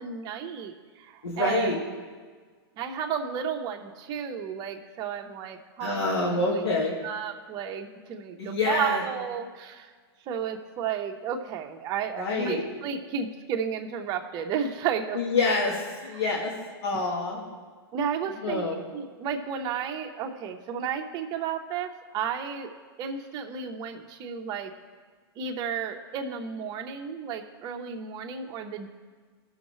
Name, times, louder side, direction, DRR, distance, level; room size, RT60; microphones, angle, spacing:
voice 1, 0.0-1.7 2.8-6.0 6.5-9.9 10.3-15.2 17.9-18.6 18.9-22.7 23.0-24.7 25.4-28.9, right 7 dB, 30° right, 4 dB, 0.8 m, -32 dB
voice 2, 1.2-1.8 5.8-7.0 8.4-9.0 12.2-12.6 15.1-16.5 16.8-17.4 18.4-18.8, left 3 dB, 85° left, -3 dB, 1.7 m, -27 dB
16.5 x 6.4 x 3.1 m, 1.5 s
hypercardioid pair, 150°, 13 cm